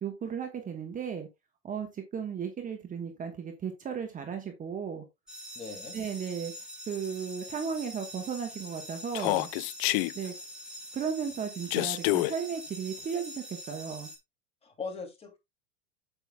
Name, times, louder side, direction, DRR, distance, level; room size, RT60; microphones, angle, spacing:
voice 1, 0.0-1.3 1.6-5.0 5.9-6.5 6.9-9.5 10.1-10.3 10.9-14.1, right 7 dB, 25° right, 1.4 m, -35 dB
sound 1, 5.3-14.2, equal, ahead, 2.7 m, -44 dB
voice 2, 5.5-6.0 14.6-15.4, left 4 dB, 20° left, 3.0 m, -40 dB
Human voice, 9.1-10.1 11.7-12.3, left 20 dB, 50° left, 0.4 m, -27 dB
8.5 x 8.0 x 2.3 m
hypercardioid pair, 105°, 32 cm